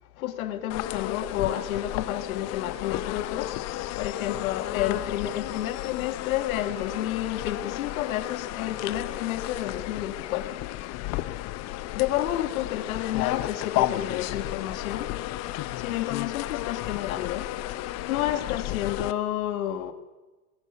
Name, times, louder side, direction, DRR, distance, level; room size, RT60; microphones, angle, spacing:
voice 1, 0.2-3.5 4.0-10.6 12.0-15.1 15.8-17.5 18.1-19.9, left 12 dB, 65° left, 2.1 m, -30 dB
sound 1, 0.7-19.1, left 15 dB, 35° left, 0.9 m, -33 dB
21.0 x 17.5 x 7.2 m
hypercardioid pair, 115°, 46 cm